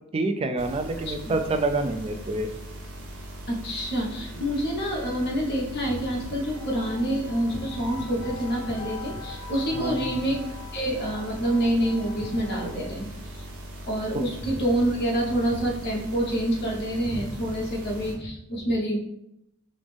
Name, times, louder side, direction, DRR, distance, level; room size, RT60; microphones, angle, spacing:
voice 1, 0.1-2.5 9.7-10.1, right 2 dB, 25° right, 6 dB, 0.3 m, -27 dB
sound 1, 0.6-18.1, right 1 dB, 80° right, 0.9 m, -40 dB
voice 2, 3.5-10.4 10.7-13.4 13.9-19.0, right 1 dB, 50° left, -1 dB, 0.9 m, -27 dB
sound 2, 3.6-13.0, left 5 dB, 85° left, 0.7 m, -44 dB
5.1 x 2.0 x 3.4 m, 0.81 s
head